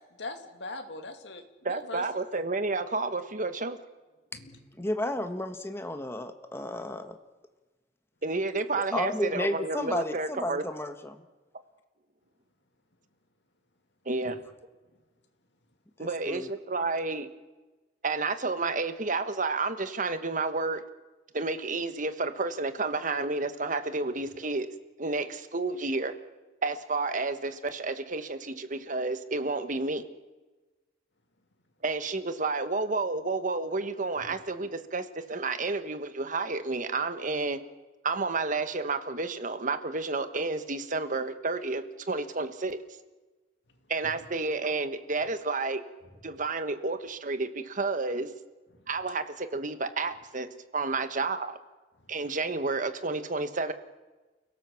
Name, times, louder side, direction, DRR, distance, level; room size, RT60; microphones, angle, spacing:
voice 1, 0.2-1.4 1.7-2.0 4.4-4.6 34.3-34.4 34.6-34.7, left 2 dB, 65° left, 5 dB, 2.6 m, -40 dB
voice 2, 1.6-3.8 8.2-10.6 14.0-14.4 16.0-17.3 18.0-20.8 21.3-24.7 25.0-26.1 26.6-30.0 31.8-37.6 38.0-42.8 43.9-45.8 46.2-48.3 48.9-51.6 52.1-53.7, right 3 dB, 45° right, 10 dB, 1.5 m, -31 dB
voice 3, 4.7-7.2 8.7-11.2 16.0-16.5, left 1 dB, 15° left, 7 dB, 1.5 m, -33 dB
29.5 x 17.0 x 7.2 m, 1.2 s
head